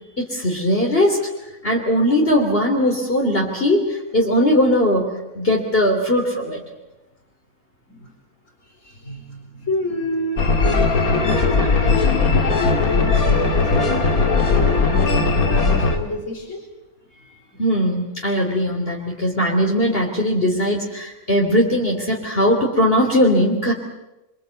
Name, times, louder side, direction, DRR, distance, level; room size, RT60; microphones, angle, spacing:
voice 1, 0.2-1.2 1.6-6.6 17.6-23.7, equal, 40° left, -1 dB, 3.4 m, -19 dB
voice 2, 8.8-16.6, left 1 dB, 55° left, 2 dB, 4.7 m, -29 dB
sound 1, 10.4-16.0, left 4 dB, 75° left, 2.8 m, -18 dB
26.5 x 25.0 x 8.3 m, 1.0 s
omnidirectional pair, 1.5 m